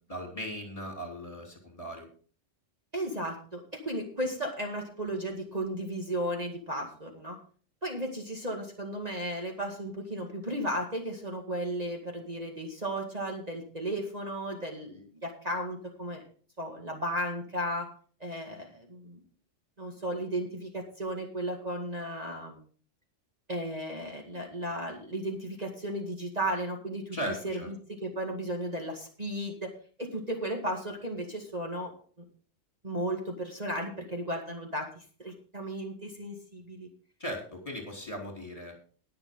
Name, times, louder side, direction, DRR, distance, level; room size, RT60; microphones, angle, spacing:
voice 1, 0.0-2.1 27.1-27.7 37.2-38.7, equal, 25° left, 1 dB, 3.8 m, -38 dB
voice 2, 2.9-7.4 7.8-16.2 16.6-17.9 18.2-19.2 19.8-22.6 23.5-27.7 28.0-31.9 32.8-36.9, right 1 dB, 30° right, 1 dB, 2.2 m, -35 dB
20.5 x 6.8 x 3.8 m, 0.41 s
omnidirectional pair, 1.3 m